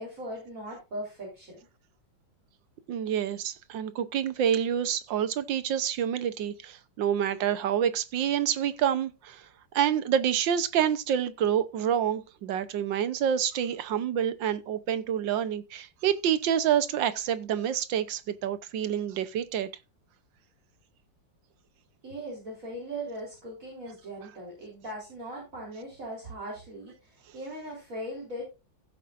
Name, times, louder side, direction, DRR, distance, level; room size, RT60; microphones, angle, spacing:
voice 1, 0.0-1.6 22.0-28.4, right 1 dB, 45° right, 4.3 m, -39 dB
voice 2, 2.9-9.4 9.7-19.7, right 9 dB, 75° right, 1.6 m, -27 dB
15.5 x 7.9 x 2.5 m
omnidirectional pair, 2.0 m